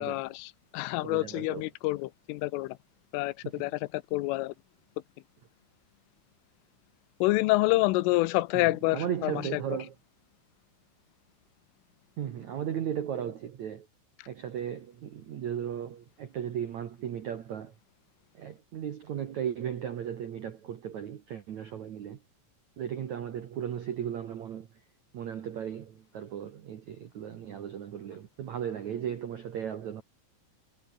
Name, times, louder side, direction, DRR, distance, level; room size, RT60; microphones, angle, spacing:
voice 1, 0.0-2.8 3.1-4.6 7.2-9.6, left 20 dB, 90° left, 3.3 m, -28 dB
voice 2, 1.0-1.6 3.4-3.6 8.5-9.9 12.2-13.9 14.3-17.7 18.3-22.2 22.8-24.7 25.1-30.0, right 9 dB, 75° right, 1.7 m, -36 dB
omnidirectional pair, 5.7 m